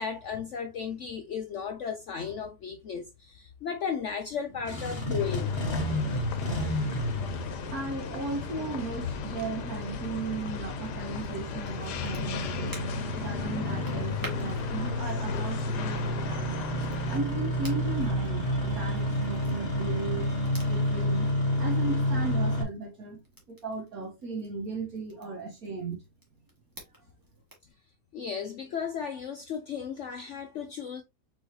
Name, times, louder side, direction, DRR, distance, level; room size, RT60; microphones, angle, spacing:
voice 1, 0.0-5.5 28.1-31.0, left 6 dB, 60° left, 0.8 m, -35 dB
Engine starting, 4.5-22.6, equal, 40° left, 1.5 m, -30 dB
sound 1, 5.2-17.2, left 8 dB, 85° left, 1.3 m, -39 dB
voice 2, 7.7-21.3 21.6-26.0, right 3 dB, 60° right, 1.8 m, -36 dB
Crackle, 11.1-27.7, right 1 dB, 15° right, 1.6 m, -52 dB
4.6 x 4.2 x 2.7 m
omnidirectional pair, 1.7 m